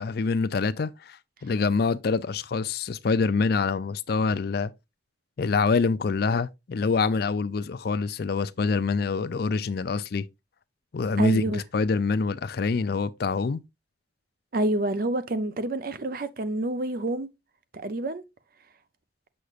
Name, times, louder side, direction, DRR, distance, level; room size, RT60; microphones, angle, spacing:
voice 1, 0.0-4.7 5.4-10.2 10.9-13.6, left 4 dB, 55° left, 0.4 m, -26 dB
voice 2, 11.2-11.6 14.5-17.3 17.7-18.2, right 1 dB, 50° right, 0.6 m, -28 dB
6.8 x 6.4 x 2.4 m
head